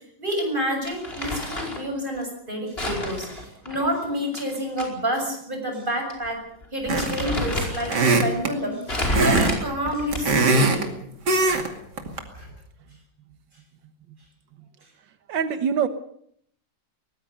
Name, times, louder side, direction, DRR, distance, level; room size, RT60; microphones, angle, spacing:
voice 1, 0.2-6.4 6.7-10.9 12.4-12.5, equal, 25° right, 3 dB, 7.2 m, -29 dB
Crumpling crinkling, 0.8-1.9 2.8-4.9 5.2-5.3 6.1-6.3 6.6-8.2 8.9-10.5, left 1 dB, 30° left, 5.2 m, -30 dB
sound 1, 6.9-7.3 7.9-8.5 9.1-9.6 9.9-10.9 11.3-11.7 12.0-12.2, right 3 dB, 65° right, 3.0 m, -20 dB
voice 2, 15.3-15.9, right 7 dB, 90° right, 10 dB, 1.9 m, -23 dB
23.0 x 19.5 x 6.7 m, 0.66 s
omnidirectional pair, 1.9 m